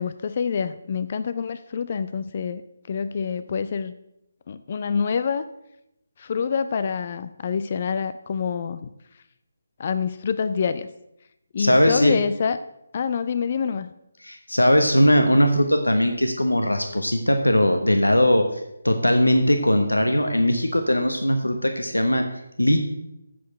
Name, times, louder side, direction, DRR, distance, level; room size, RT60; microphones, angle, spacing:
voice 1, 0.0-2.6 2.9-3.9 4.5-5.4 6.2-8.9 9.8-10.9 11.5-12.6 12.9-13.9, left 6 dB, 40° left, 12 dB, 0.4 m, -26 dB
voice 2, 11.6-12.1 14.2-22.3 22.6-22.8, equal, 90° left, 5 dB, 1.1 m, -20 dB
7.7 x 6.5 x 7.9 m, 0.85 s
figure-of-eight pair, 150°, 0 cm